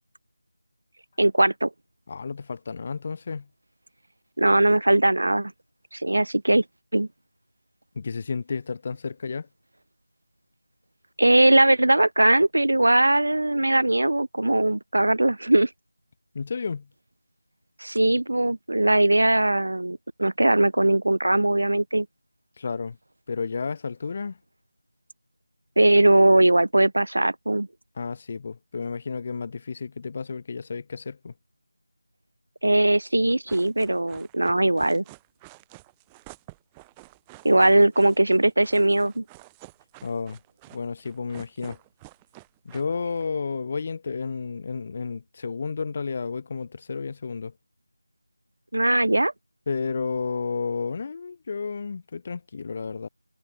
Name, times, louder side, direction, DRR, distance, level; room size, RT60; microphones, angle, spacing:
voice 1, 1.2-1.7 4.4-5.5 5.9-6.6 6.9-7.1 11.2-15.7 17.8-22.1 25.8-27.7 32.6-35.0 37.4-39.2 48.7-49.3, right 1 dB, 80° right, 1.1 m, -20 dB
voice 2, 2.1-3.5 7.9-9.5 16.3-16.9 22.6-23.0 23.3-24.4 28.0-31.3 40.0-40.4 40.7-41.8 42.6-47.5 49.7-53.1, left 5 dB, 20° left, 1.4 m, -31 dB
sound 1, 33.3-43.3, right 24 dB, 5° right, 1.1 m, -49 dB
figure-of-eight pair, 180°, 0 cm